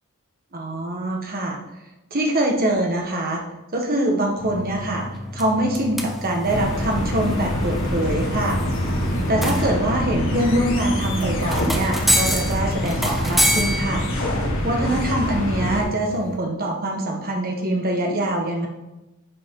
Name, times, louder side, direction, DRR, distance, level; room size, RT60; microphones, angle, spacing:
voice 1, 0.5-1.6 2.1-3.4 3.7-5.0 5.3-8.6 9.3-14.0 14.6-18.7, right 1 dB, 40° right, 1 dB, 1.6 m, -24 dB
sound 1, 4.4-16.4, equal, ahead, 0.7 m, -28 dB
sound 2, 6.5-15.8, equal, 60° left, 2.1 m, -25 dB
9.8 x 6.5 x 3.9 m, 1.0 s
head